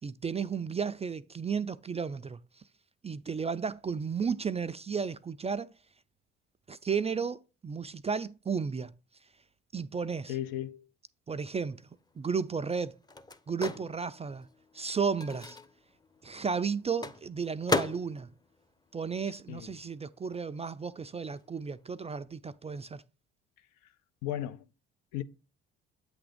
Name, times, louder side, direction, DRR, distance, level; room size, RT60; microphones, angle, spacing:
voice 1, 0.0-2.4 3.0-5.7 6.7-8.9 9.7-10.4 11.3-11.9 12.2-13.0 13.5-14.5 14.7-15.6 16.2-18.3 18.9-23.0, right 5 dB, 20° right, 0.3 m, -33 dB
voice 2, 10.3-10.9 19.5-19.7 24.2-24.6 25.1-25.2, left 12 dB, 70° left, 0.7 m, -35 dB
Microwave oven, 11.8-19.9 20.1-22.1, left 2 dB, 10° left, 0.7 m, -38 dB
8.1 x 3.5 x 5.0 m
hypercardioid pair, 55°, 34 cm